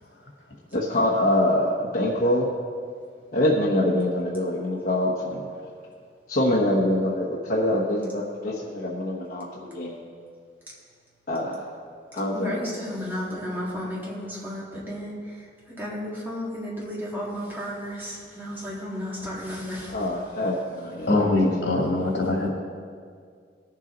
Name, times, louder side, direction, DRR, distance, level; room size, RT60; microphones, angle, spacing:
voice 1, 0.7-2.5 3.3-5.7 6.3-10.0 11.3-11.6 12.1-12.7 19.9-22.0, left 1 dB, 55° left, -6 dB, 1.2 m, -25 dB
voice 2, 12.3-15.1 15.8-19.9, equal, 10° right, -6 dB, 2.3 m, -33 dB
voice 3, 21.1-22.5, left 2 dB, 80° left, -1 dB, 2.4 m, -22 dB
18.0 x 7.3 x 4.0 m, 2.1 s
head